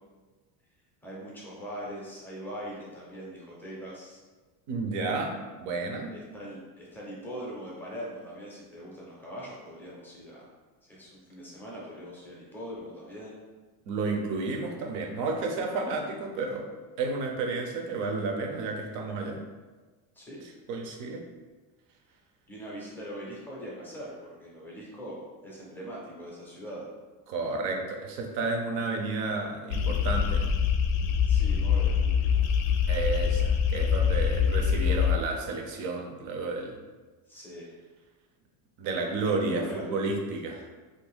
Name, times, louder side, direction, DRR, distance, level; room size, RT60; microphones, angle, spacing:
voice 1, 1.0-4.2 6.1-10.5 10.8-13.4 20.1-20.4 22.5-24.1 24.4-26.9 31.2-32.4 34.3-34.5 37.3-37.7 39.2-39.9, equal, 5° left, -5 dB, 0.5 m, -41 dB
voice 2, 4.7-5.3 5.6-6.1 13.9-16.6 17.0-19.4 20.7-21.2 27.3-30.5 32.9-36.7 38.8-40.7, right 3 dB, 50° right, 3 dB, 0.6 m, -31 dB
sound 1, 29.7-35.1, left 7 dB, 60° left, 0.5 m, -24 dB
2.9 x 2.6 x 3.5 m, 1.3 s
cardioid pair, 175°, 40 cm